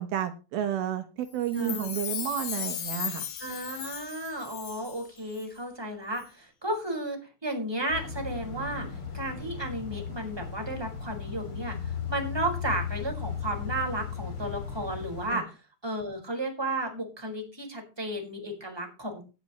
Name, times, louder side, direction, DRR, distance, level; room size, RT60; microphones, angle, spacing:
voice 1, 0.0-3.3 15.3-15.5, right 10 dB, 75° right, 9 dB, 3.0 m, -31 dB
Chime, 1.4-5.1 5.3-5.4, left 11 dB, 80° left, 3.8 m, -36 dB
voice 2, 1.5-1.9 3.4-8.9 9.1-15.5 15.8-19.2, right 1 dB, 5° right, 2 dB, 4.7 m, -33 dB
sound 1, 7.9-15.3, left 6 dB, 35° left, 3.8 m, -36 dB
18.5 x 10.5 x 3.1 m, 0.32 s
omnidirectional pair, 4.4 m